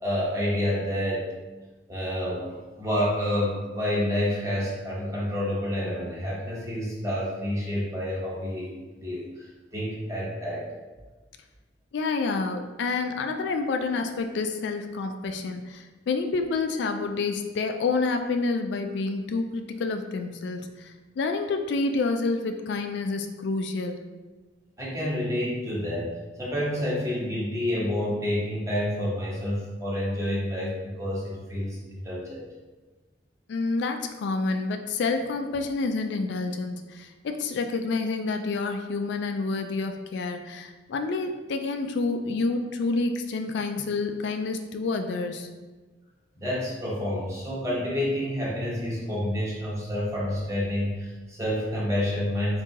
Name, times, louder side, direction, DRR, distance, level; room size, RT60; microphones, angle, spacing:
voice 1, 0.0-1.2 1.9-2.5 2.8-9.5 9.7-10.6 24.8-26.1 26.4-31.8 32.0-32.4 46.4-52.6, left 1 dB, 15° right, -6 dB, 1.0 m, -28 dB
voice 2, 11.9-24.0 33.5-45.5, left 3 dB, 70° left, 6 dB, 0.3 m, -28 dB
3.8 x 2.7 x 3.8 m, 1.3 s
head